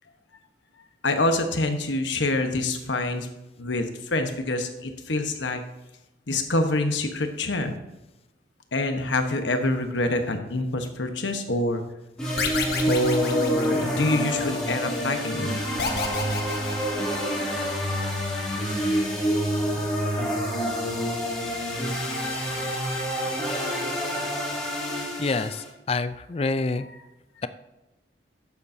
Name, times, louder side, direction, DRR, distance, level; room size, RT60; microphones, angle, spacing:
voice 1, 1.0-3.3 3.6-5.6 6.3-7.8 8.7-11.8 12.8-15.5 19.7-19.9, left 2 dB, 90° left, 6 dB, 1.2 m, -26 dB
sound 1, 12.2-25.7, equal, 5° left, 2.4 m, -27 dB
sound 2, 12.4-14.3 15.8-17.6, left 4 dB, 60° left, 1.3 m, -31 dB
voice 2, 25.2-26.9 27.4-27.5, left 3 dB, 35° left, 12 dB, 0.4 m, -27 dB
11.5 x 8.4 x 2.8 m, 0.99 s
head